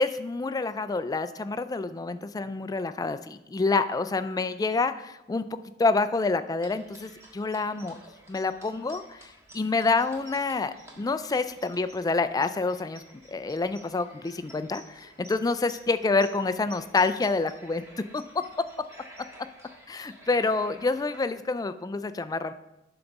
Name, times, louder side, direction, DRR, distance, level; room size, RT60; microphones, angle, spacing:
voice 1, 0.0-5.4 5.8-8.0 8.3-13.0 13.3-17.8 18.1-18.2 19.9-22.5, left 3 dB, 20° left, 12 dB, 0.3 m, -27 dB
sound 1, 6.6-21.3, right 1 dB, 15° right, 1.5 m, -52 dB
8.6 x 4.0 x 5.9 m, 0.94 s
head